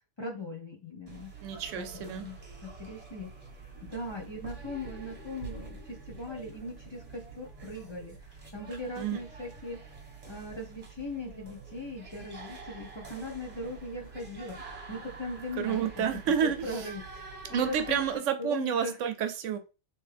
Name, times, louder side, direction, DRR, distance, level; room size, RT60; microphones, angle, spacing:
voice 1, 0.2-1.3 1.8-2.4 2.6-3.3 3.8-9.8 10.3-16.0 16.4-18.0 18.4-19.0, left 1 dB, 25° left, -1 dB, 0.7 m, -39 dB
sound 1, 1.1-18.2, right 4 dB, 30° right, 1.0 m, -47 dB
voice 2, 1.4-2.3 9.0-9.2 15.6-16.8 17.5-19.6, right 8 dB, 75° right, 8 dB, 0.9 m, -30 dB
3.5 x 3.0 x 3.3 m, 0.30 s
omnidirectional pair, 1.3 m